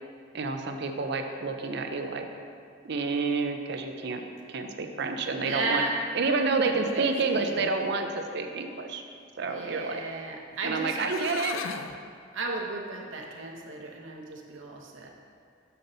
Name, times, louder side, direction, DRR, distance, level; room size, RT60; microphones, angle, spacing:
voice 1, 0.3-2.3 2.8-5.9 6.1-9.0 9.4-10.0 10.6-11.6, right 4 dB, 60° right, 5 dB, 0.5 m, -29 dB
voice 2, 5.3-5.9 6.6-7.6 9.4-11.1 12.3-15.1, right 3 dB, 75° right, 0 dB, 0.9 m, -35 dB
sound 1, 10.5-10.6 10.9-12.0, left 6 dB, 85° left, 0.4 m, -36 dB
6.7 x 5.8 x 3.9 m, 2.3 s
head